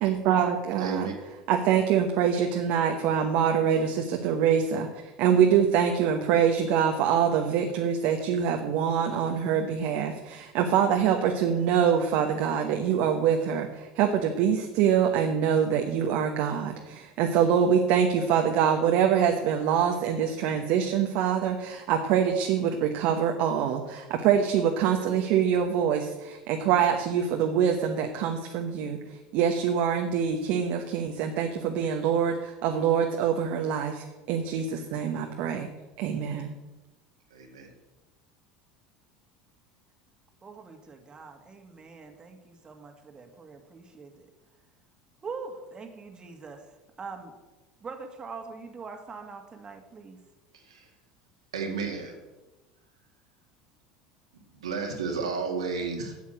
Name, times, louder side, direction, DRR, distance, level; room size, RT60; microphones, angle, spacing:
voice 1, 0.0-1.1 1.5-4.9 5.2-29.0 29.3-35.7 36.0-36.5, right 8 dB, 65° right, 4 dB, 1.1 m, -25 dB
voice 2, 0.8-1.1 37.3-37.7 50.5-50.9 51.5-52.2 54.5-56.2, right 4 dB, 90° right, 2 dB, 2.0 m, -32 dB
voice 3, 40.4-44.3 45.2-46.7 47.0-47.3 47.8-50.2, right 4 dB, 30° right, 4 dB, 1.8 m, -43 dB
8.6 x 7.2 x 7.7 m, 1.1 s
hypercardioid pair, 80°, 3 cm